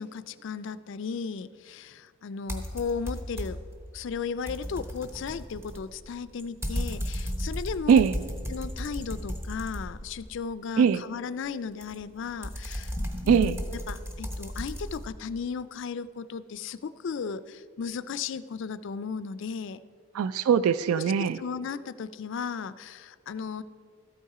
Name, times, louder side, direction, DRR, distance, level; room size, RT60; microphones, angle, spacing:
voice 1, 0.0-3.6 3.9-8.0 8.5-12.9 13.2-13.6 13.9-19.8 20.9-21.0 21.3-23.6, left 5 dB, 55° left, 16 dB, 0.3 m, -35 dB
sound 1, 2.5-3.8 4.1-10.3 11.8-15.0, equal, 10° right, 0.9 m, -35 dB
voice 2, 20.1-21.4, right 7 dB, 80° right, 15 dB, 0.3 m, -21 dB
13.0 x 8.5 x 4.8 m, 2.2 s
head